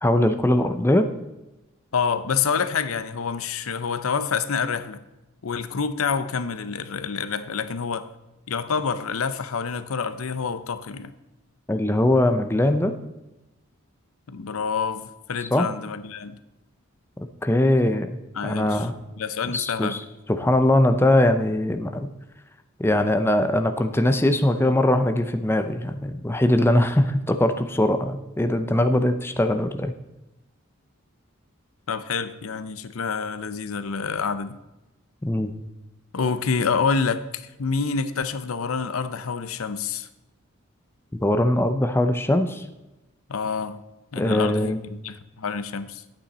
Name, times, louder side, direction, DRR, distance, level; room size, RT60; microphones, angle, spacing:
voice 1, 0.0-1.1 11.7-12.9 15.5-15.7 17.4-18.1 18.4-19.0 19.5-20.0 20.3-22.1 22.8-29.9 35.2-35.5 41.2-42.6 44.2-44.8, left 1 dB, 10° left, 8 dB, 0.5 m, -21 dB
voice 2, 1.9-5.0 5.4-8.1 8.5-11.1 14.3-16.4 18.3-18.9 19.2-20.1 31.9-34.6 36.1-40.1 43.3-43.8 44.1-46.0, left 5 dB, 90° left, 12 dB, 0.6 m, -27 dB
10.0 x 8.7 x 4.1 m, 0.99 s
head